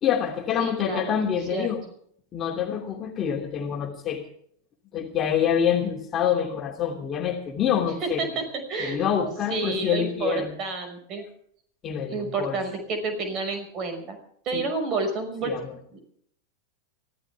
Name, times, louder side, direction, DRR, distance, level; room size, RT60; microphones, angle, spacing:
voice 1, 0.0-1.8 2.3-4.2 4.9-8.2 8.8-10.5 11.8-12.6 14.5-14.7 15.4-15.7, left 8 dB, 25° left, 2 dB, 2.9 m, -26 dB
voice 2, 0.6-1.7 8.0-9.0 9.5-11.2 12.1-14.2 14.4-15.5 15.9-16.0, right 3 dB, 35° right, 6 dB, 5.9 m, -30 dB
24.5 x 15.5 x 3.6 m, 0.64 s
figure-of-eight pair, 90°, 0 cm